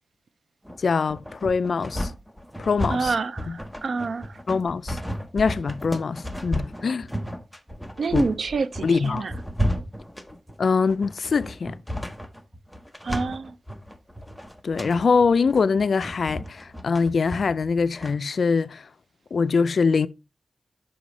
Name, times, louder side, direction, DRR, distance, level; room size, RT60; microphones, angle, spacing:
sound 1, 0.7-18.1, equal, ahead, 0.7 m, -33 dB
voice 1, 0.8-2.1 2.6-3.1 3.5-3.6 4.5-5.0 5.3-7.1 8.1-8.2 8.8-9.2 10.6-11.8 14.6-18.9 19.3-20.1, left 5 dB, 65° left, 0.3 m, -23 dB
voice 2, 2.9-4.4 8.0-9.3 13.0-13.6, right 4 dB, 70° right, 0.4 m, -28 dB
5.9 x 4.8 x 3.9 m
wide cardioid pair, 140°, 0 cm